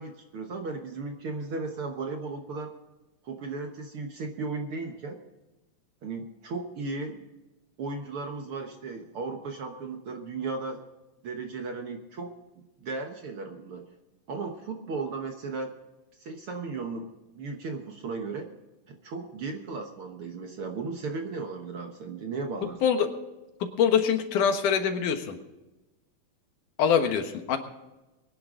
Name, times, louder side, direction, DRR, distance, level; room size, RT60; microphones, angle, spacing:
voice 1, 0.0-2.7 3.2-5.2 6.0-7.3 7.8-10.8 11.2-12.3 12.8-13.9 14.3-15.7 16.2-17.1 17.3-18.5 18.9-22.8, right 4 dB, 55° right, 4 dB, 1.7 m, -35 dB
voice 2, 23.8-25.4 26.8-27.6, left 7 dB, 80° left, 6 dB, 2.9 m, -24 dB
23.0 x 10.0 x 3.8 m, 1.0 s
omnidirectional pair, 3.6 m